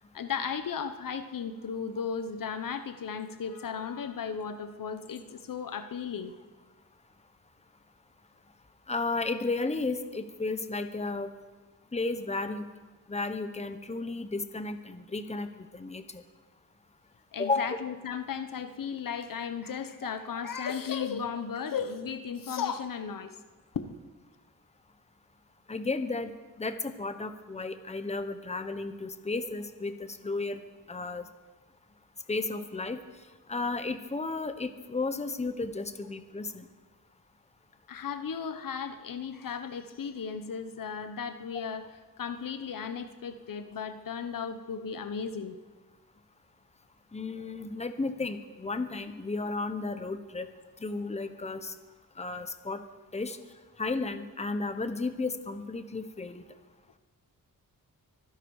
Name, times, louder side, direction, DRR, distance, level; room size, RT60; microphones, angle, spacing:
voice 1, 0.1-6.3 17.3-23.3 23.7-24.0 37.9-41.9 42.2-45.6, left 6 dB, 65° left, 9 dB, 1.0 m, -35 dB
voice 2, 8.9-11.3 11.9-12.7 13.1-16.2 17.4-17.8 25.7-26.3 26.6-30.0 30.2-30.6 30.9-31.2 32.3-33.0 33.5-36.7 47.1-50.5 50.8-51.7 52.2-52.8 53.1-53.4 53.8-56.4, left 3 dB, 20° left, 9 dB, 1.1 m, -33 dB
24.0 x 11.0 x 4.8 m, 1.3 s
wide cardioid pair, 95°, 35 cm